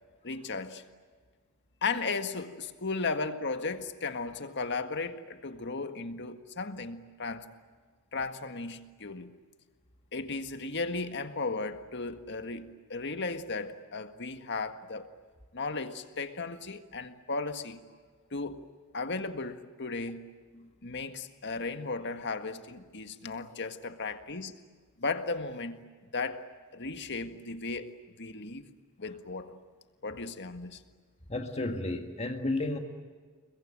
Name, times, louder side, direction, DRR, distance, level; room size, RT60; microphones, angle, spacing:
voice 1, 0.2-0.8 1.8-7.5 8.1-9.4 10.1-15.1 15.5-17.8 18.3-18.7 18.9-20.3 20.8-24.5 25.0-25.8 26.1-26.5 26.7-28.6 29.0-29.6 30.0-30.8, left 3 dB, 50° left, 1.8 m, -35 dB
voice 2, 31.3-32.8, left 2 dB, 30° left, 1.9 m, -32 dB
29.5 x 22.5 x 9.0 m
head